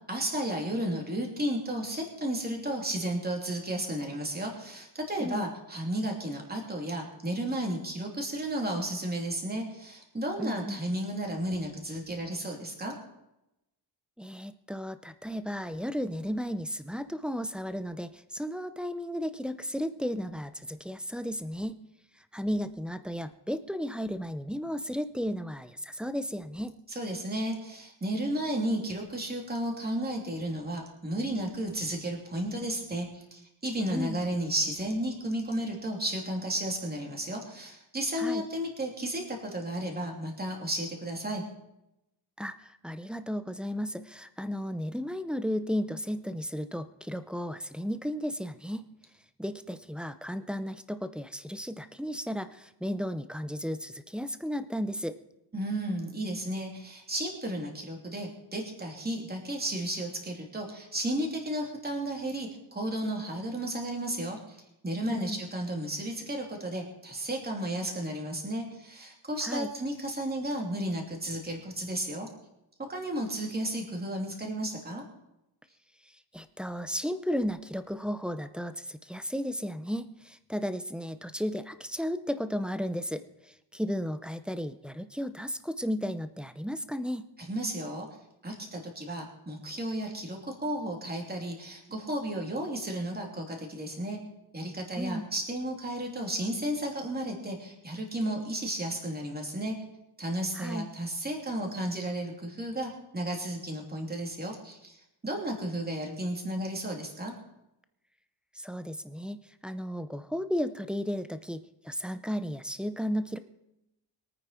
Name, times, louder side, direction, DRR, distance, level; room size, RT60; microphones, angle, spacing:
voice 1, 0.1-12.9 26.9-41.4 55.5-72.3 72.9-75.0 87.4-88.1 88.4-94.2 94.5-99.8 100.2-105.0 105.2-107.3, right 1 dB, 20° right, 0 dB, 3.0 m, -33 dB
voice 2, 10.4-10.8 14.2-21.8 22.3-26.7 33.9-34.2 38.2-38.5 42.4-48.8 49.4-55.2 65.1-65.4 69.4-69.7 76.1-87.2 95.0-95.3 100.5-100.9 108.5-113.4, equal, ahead, 10 dB, 0.6 m, -34 dB
23.0 x 9.2 x 4.4 m, 0.88 s
wide cardioid pair, 150°, 44 cm